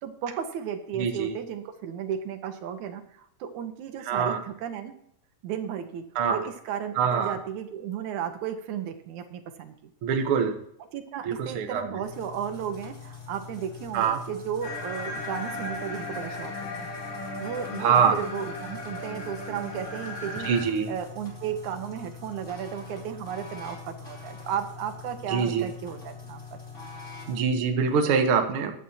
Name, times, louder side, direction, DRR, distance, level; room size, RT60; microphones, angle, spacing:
voice 1, 0.0-4.9 5.4-9.7 10.9-16.9 17.4-20.5 20.9-26.6, right 8 dB, 85° right, 7 dB, 2.5 m, -34 dB
voice 2, 1.0-1.3 4.1-4.4 6.1-6.4 7.0-7.4 10.0-10.6 11.2-12.0 13.9-14.2 17.8-18.2 20.4-20.9 25.3-25.6 27.3-28.7, right 6 dB, 55° right, 5 dB, 1.8 m, -24 dB
sound 1, 12.0-27.4, left 5 dB, 25° left, 3.3 m, -44 dB
sound 2, 14.6-20.6, left 2 dB, 75° left, 3.5 m, -36 dB
15.0 x 11.0 x 2.8 m, 0.71 s
omnidirectional pair, 3.3 m